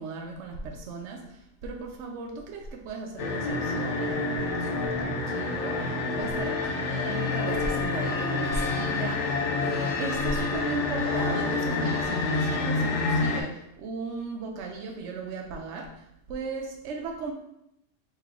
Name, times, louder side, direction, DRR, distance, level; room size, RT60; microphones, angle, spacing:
voice 1, 0.0-17.3, right 4 dB, 75° right, 1 dB, 0.9 m, -36 dB
sound 1, 3.2-13.4, left 3 dB, 75° left, 0.9 m, -28 dB
3.2 x 3.0 x 3.6 m, 0.78 s
omnidirectional pair, 1.3 m